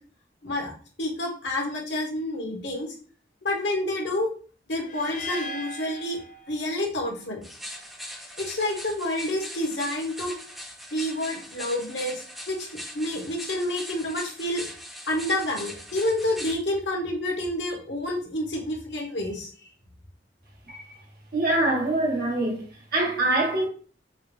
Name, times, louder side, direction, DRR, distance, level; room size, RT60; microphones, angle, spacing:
voice 1, 1.0-2.9 3.4-4.3 4.7-6.2 6.5-7.4 8.4-10.3 10.9-14.6 15.1-19.5, left 1 dB, 75° left, 1.4 m, -29 dB
sound 1, 4.8-7.0, left 1 dB, 45° left, 0.5 m, -38 dB
sound 2, 7.4-16.5, equal, ahead, 1.1 m, -40 dB
voice 2, 21.3-22.6 22.9-23.7, right 2 dB, 55° right, 1.5 m, -24 dB
5.6 x 2.6 x 3.3 m
head